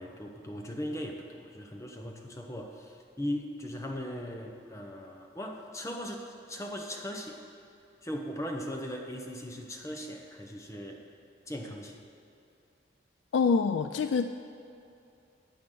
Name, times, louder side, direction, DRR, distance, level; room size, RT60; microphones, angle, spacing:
voice 1, 0.0-7.4 8.0-11.0 11.5-12.0, equal, 15° left, 2 dB, 0.9 m, -38 dB
voice 2, 13.3-14.3, left 5 dB, 85° left, 9 dB, 0.3 m, -26 dB
15.5 x 9.2 x 3.9 m, 2.6 s
head